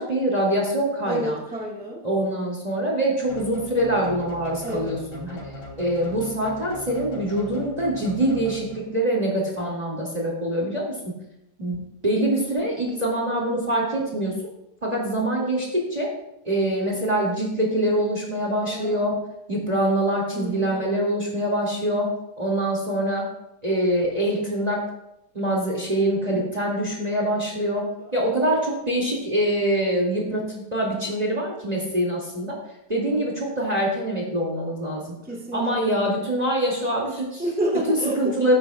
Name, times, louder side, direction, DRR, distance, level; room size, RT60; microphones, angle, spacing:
voice 1, 0.0-1.4 2.0-5.4 5.8-11.1 11.6-11.8 12.0-14.4 14.8-16.1 16.4-19.2 19.5-22.1 22.4-23.3 23.6-24.8 25.3-32.6 32.9-35.2 35.5-37.4 37.9-38.6, right 1 dB, 25° right, -2 dB, 2.2 m, -24 dB
voice 2, 1.0-2.0 4.6-4.9 18.6-19.1 20.3-20.9 26.3-26.5 28.0-28.1 35.2-36.1 37.4-38.3, right 1 dB, 5° right, -5 dB, 2.1 m, -30 dB
sound 1, 3.3-9.0, left 1 dB, 85° left, 3.2 m, -39 dB
18.5 x 9.5 x 2.3 m, 0.85 s
omnidirectional pair, 1.8 m